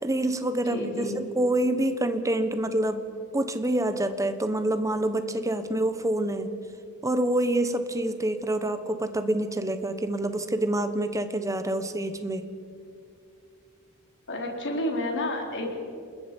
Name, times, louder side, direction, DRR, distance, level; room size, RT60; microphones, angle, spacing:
voice 1, 0.0-3.0 3.3-6.5 7.0-12.4, right 1 dB, 15° right, 10 dB, 1.2 m, -27 dB
voice 2, 0.7-1.2 14.3-15.8, left 1 dB, 55° left, 1 dB, 4.0 m, -30 dB
28.5 x 21.0 x 5.4 m, 2.4 s
head